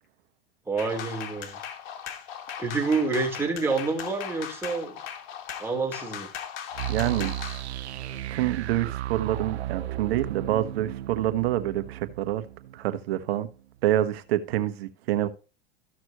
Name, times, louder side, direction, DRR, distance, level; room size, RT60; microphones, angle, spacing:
voice 1, 0.7-1.6 2.6-5.0 5.6-6.3, right 4 dB, 5° right, 3.7 m, -28 dB
sound 1, 0.8-7.6, left 9 dB, 55° left, 1.8 m, -38 dB
sound 2, 6.7-13.5, right 13 dB, 90° right, 0.6 m, -35 dB
voice 2, 6.9-7.3 8.3-12.4 12.7-13.5 13.8-15.3, right 13 dB, 70° right, 1.4 m, -27 dB
14.5 x 6.2 x 3.0 m
hypercardioid pair, 110°, 32 cm